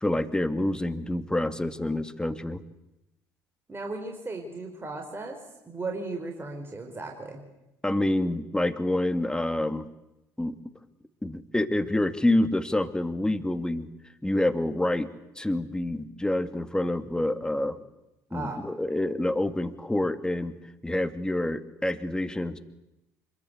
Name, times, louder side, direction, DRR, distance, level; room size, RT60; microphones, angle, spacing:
voice 1, 0.0-2.6 7.8-9.9 10.4-10.6 11.2-13.9 14.2-15.1 15.4-17.8 18.3-20.5 20.8-22.6, left 1 dB, 10° left, 10 dB, 2.3 m, -27 dB
voice 2, 3.7-7.4 18.3-18.6, right 3 dB, 25° right, 2 dB, 4.9 m, -36 dB
25.5 x 23.0 x 8.2 m, 0.90 s
hypercardioid pair, 60°, 9 cm